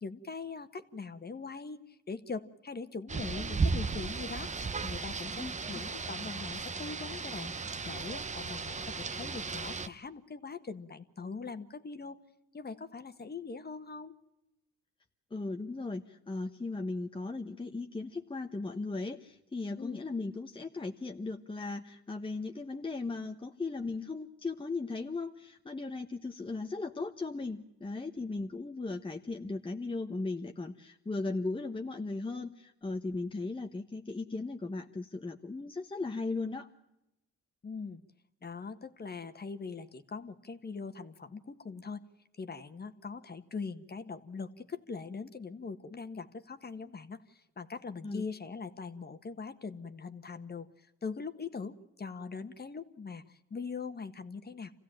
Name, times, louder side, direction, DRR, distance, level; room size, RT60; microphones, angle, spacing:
voice 1, 0.0-4.5 4.8-12.2 12.5-14.1 19.8-20.0 37.6-38.0 38.4-42.0 42.4-54.7, left 4 dB, 30° left, 10 dB, 1.6 m, -42 dB
Rain, 3.1-9.9, right 4 dB, 25° right, 1.0 m, -35 dB
voice 2, 15.3-36.7 48.0-48.2, left 3 dB, 15° left, 4 dB, 1.2 m, -37 dB
26.5 x 16.0 x 9.0 m, 0.92 s
cardioid pair, 90°, 30 cm